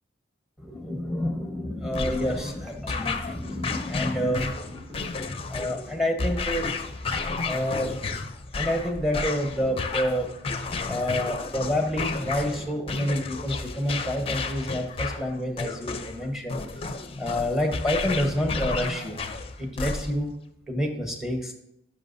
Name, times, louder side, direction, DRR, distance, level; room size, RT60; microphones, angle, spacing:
voice 1, 0.6-6.8 7.4-8.0 8.5-10.3 10.9-16.9 17.2-19.2 19.6-20.3 20.7-21.5, equal, ahead, 4 dB, 1.0 m, -28 dB
sound 1, 1.9-20.3, left 4 dB, 30° left, 0.5 m, -32 dB
sound 2, 2.3-13.2, left 1 dB, 55° right, 2.5 m, -47 dB
10.5 x 6.0 x 2.6 m, 0.80 s
head